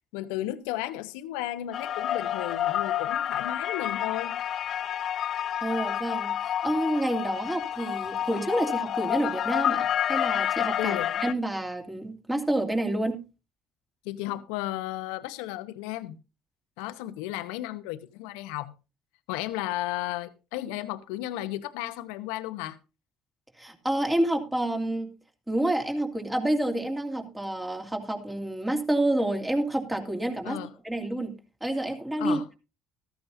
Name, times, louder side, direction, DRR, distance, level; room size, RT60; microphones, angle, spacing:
voice 1, 0.1-4.4 10.8-11.1 14.0-16.2 16.8-18.7 19.3-22.8 30.4-30.7 32.2-32.5, left 15 dB, 85° left, 0.9 m, -34 dB
sound 1, 1.7-11.3, left 10 dB, 55° left, 0.5 m, -29 dB
voice 2, 5.6-13.2 23.6-25.1 25.5-32.6, right 1 dB, 10° right, 2.7 m, -29 dB
14.5 x 13.5 x 2.7 m
supercardioid pair, 70°, 0 cm